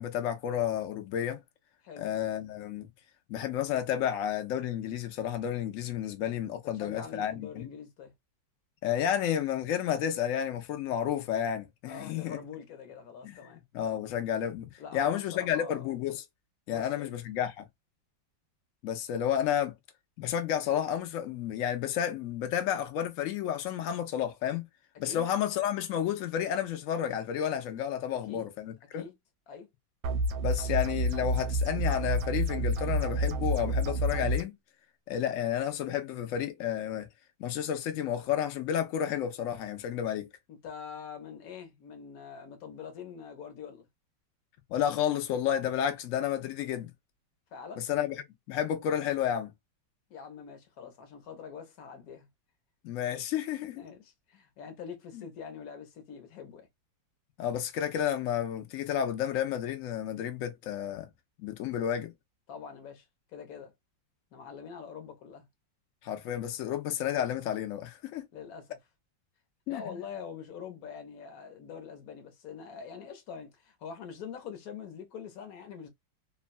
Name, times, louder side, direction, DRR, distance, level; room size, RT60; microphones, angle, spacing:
voice 1, 0.0-1.4 2.0-2.9 3.3-7.7 8.8-12.4 13.2-13.4 13.7-16.2 16.7-17.7 18.8-19.7 20.2-24.7 25.0-29.1 30.4-34.6 35.1-37.1 37.4-40.3 44.7-46.9 47.9-48.2 48.5-49.5 52.8-53.8 55.1-55.2 57.4-61.1 61.4-62.1 66.0-68.2 69.7-69.8, left 10 dB, 80° left, 0.7 m, -31 dB
voice 2, 6.7-8.1 11.9-13.6 14.8-15.9 16.7-17.1 25.0-25.3 28.1-28.5 28.9-29.1 29.5-29.7 40.5-43.9 47.5-47.8 50.1-52.3 53.7-56.7 62.5-63.7 64.3-65.5 68.3-68.8 69.7-75.9, left 6 dB, 60° left, 1.1 m, -44 dB
sound 1, 30.0-34.4, right 1 dB, 80° right, 1.3 m, -29 dB
3.1 x 2.1 x 2.5 m
omnidirectional pair, 2.1 m